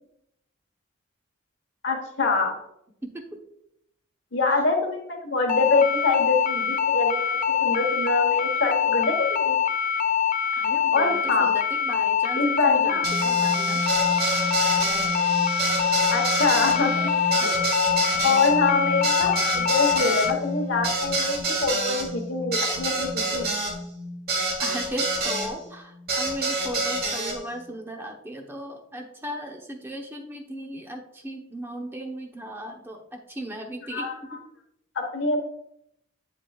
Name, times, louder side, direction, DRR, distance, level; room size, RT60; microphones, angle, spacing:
voice 1, 1.8-2.5 4.3-9.6 10.9-11.5 12.3-13.1 16.1-17.1 17.4-17.6 18.2-23.5 33.9-34.2 34.9-35.5, left 3 dB, 65° left, 3 dB, 1.2 m, -25 dB
voice 2, 3.0-3.4 10.5-13.8 17.4-17.6 24.6-34.1, equal, 10° right, 2 dB, 0.9 m, -37 dB
sound 1, 5.5-20.3, left 8 dB, 40° left, 0.4 m, -24 dB
sound 2, 13.0-25.5 26.1-27.4, right 2 dB, 50° right, 1.7 m, -27 dB
8.1 x 7.7 x 2.4 m, 0.78 s
head